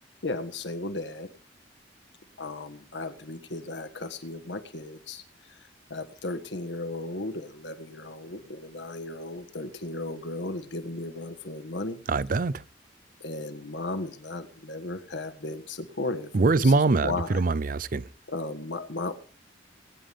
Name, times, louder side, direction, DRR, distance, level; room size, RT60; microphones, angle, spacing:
voice 1, 0.2-1.3 2.4-5.2 5.9-12.0 13.2-17.4 18.3-19.2, left 2 dB, 75° left, 1.6 m, -35 dB
voice 2, 12.1-12.6 16.3-18.1, right 3 dB, 50° right, 0.5 m, -23 dB
20.5 x 10.5 x 3.6 m
head